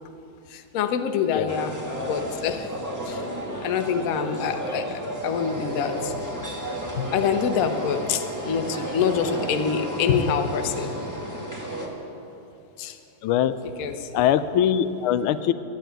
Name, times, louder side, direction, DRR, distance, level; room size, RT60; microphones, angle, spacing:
voice 1, 0.5-2.8 3.0-3.3 3.6-6.2 7.0-10.9 12.8-13.0 13.8-14.1, left 7 dB, 60° left, 6 dB, 0.9 m, -26 dB
sound 1, 1.5-11.9, equal, 10° right, 1.4 m, -32 dB
voice 2, 13.2-13.5 14.1-15.5, left 10 dB, 85° left, 12 dB, 1.5 m, -22 dB
12.0 x 9.2 x 9.0 m, 2.8 s
omnidirectional pair, 2.3 m